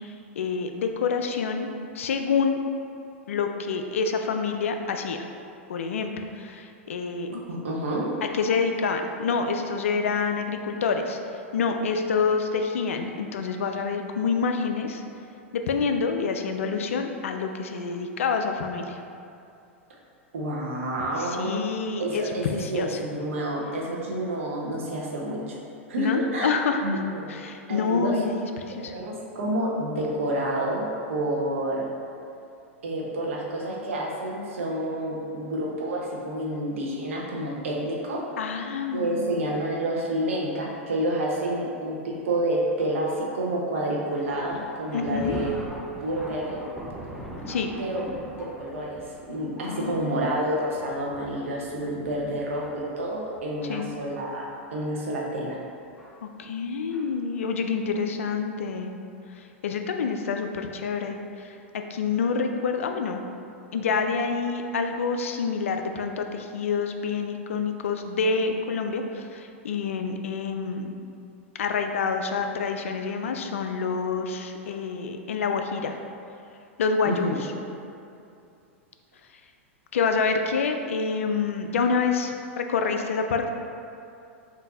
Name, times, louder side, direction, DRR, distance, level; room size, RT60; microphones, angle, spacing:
voice 1, 0.4-1.7 1.9-2.6 3.3-5.2 5.7-7.4 8.2-11.2 11.5-15.0 15.5-19.0 21.2-23.0 26.0-27.0 27.3-28.9 38.4-39.3 44.9-45.4 47.5-47.7 49.6-50.2 53.6-53.9 56.2-58.9 59.6-61.5 61.9-63.2 63.7-70.9 71.6-76.0 76.8-77.5 79.9-83.5, left 5 dB, 75° left, 5 dB, 0.3 m, -27 dB
voice 2, 7.5-8.1 20.3-21.7 22.0-25.5 25.9-26.5 26.8-27.3 27.7-28.3 28.8-31.9 32.8-38.2 38.9-45.5 46.0-46.6 47.8-48.9 49.3-54.5 54.7-55.6 77.0-77.4, right 1 dB, 70° right, -3 dB, 0.9 m, -29 dB
Thunder, 44.2-54.1 54.9-55.0 56.0-56.1 56.9-57.0, equal, ahead, 0.5 m, -42 dB
3.7 x 2.7 x 3.8 m, 2.6 s
hypercardioid pair, 100°, 7 cm